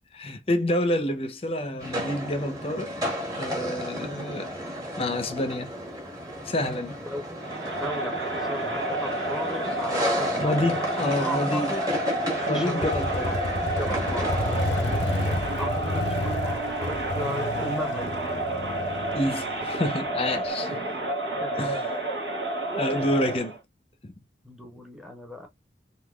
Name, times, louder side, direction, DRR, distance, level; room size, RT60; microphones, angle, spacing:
voice 1, 0.1-2.9 3.4-4.5 5.0-5.7 6.4-7.0 10.4-11.8 12.5-13.3 19.1-20.8 21.6-21.9 22.7-23.6 24.0-24.1, left 1 dB, 35° left, 0.6 m, -28 dB
sound 1, 1.8-15.3, equal, 20° right, 1.2 m, -33 dB
Crowd, 7.4-23.6, right 1 dB, 80° right, 1.3 m, -30 dB
voice 2, 7.7-11.8 12.4-12.9 13.2-13.3 13.6-18.1 20.8-20.9 21.4-21.9 24.4-25.5, equal, 5° right, 0.8 m, -37 dB
Motorcycle, 12.8-20.5, left 2 dB, 80° left, 0.6 m, -31 dB
3.6 x 2.7 x 2.3 m
head